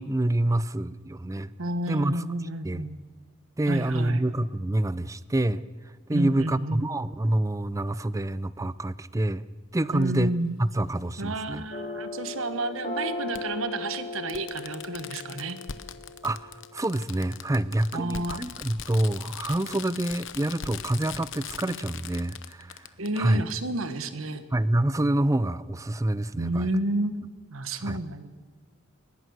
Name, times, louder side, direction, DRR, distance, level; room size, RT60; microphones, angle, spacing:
voice 1, 0.0-1.5 1.9-2.2 2.6-2.8 3.6-5.6 6.1-9.5 9.7-10.3 10.6-11.6 16.2-22.9 23.2-23.4 24.5-26.7 27.8-28.0, right 1 dB, 15° right, 17 dB, 0.5 m, -27 dB
voice 2, 1.6-3.0 3.7-4.2 6.1-6.9 9.9-10.5 11.2-15.6 17.9-18.4 23.0-24.4 26.4-28.3, right 2 dB, 75° right, 11 dB, 1.3 m, -30 dB
Fireworks, 10.0-10.1 11.6-11.7 13.3-13.4 13.9-14.0 14.3-23.2 23.5-23.6, left 7 dB, 65° left, 1.0 m, -40 dB
sound 1, 11.7-16.8, left 2 dB, 40° left, 2.5 m, -37 dB
21.5 x 20.0 x 6.4 m, 1.4 s
head